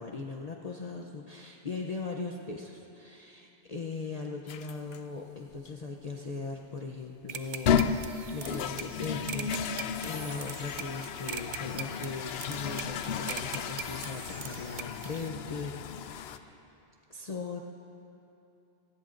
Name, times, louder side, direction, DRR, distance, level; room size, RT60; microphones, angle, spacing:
voice 1, 0.0-7.9 8.3-15.7 16.0-16.6 17.1-17.6, left 4 dB, 40° left, 0 dB, 0.7 m, -39 dB
sound 1, 4.5-5.0 5.7-5.8 7.4-16.4, left 7 dB, 70° left, 0.8 m, -33 dB
sound 2, 7.3-15.3, right 7 dB, 50° right, 0.7 m, -42 dB
25.0 x 18.5 x 2.5 m, 2.9 s
omnidirectional pair, 1.1 m